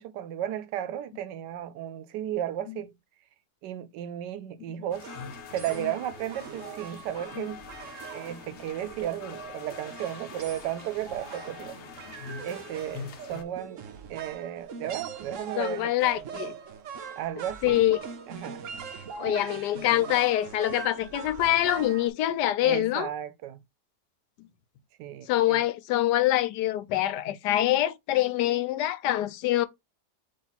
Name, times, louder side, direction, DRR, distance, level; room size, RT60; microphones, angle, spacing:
voice 1, 0.0-2.9 3.6-5.1 5.5-7.7 8.1-11.8 12.4-15.9 17.2-17.9 18.3-18.6 22.6-23.6 25.0-25.6, right 11 dB, 85° right, 1.2 m, -34 dB
sound 1, 4.9-13.4, left 6 dB, 55° left, 0.8 m, -46 dB
sound 2, 5.0-22.1, right 7 dB, 55° right, 0.9 m, -42 dB
voice 2, 15.6-16.5 17.6-18.0 19.2-23.1 25.3-29.7, left 14 dB, 80° left, 1.2 m, -25 dB
4.2 x 3.0 x 4.1 m
omnidirectional pair, 1.8 m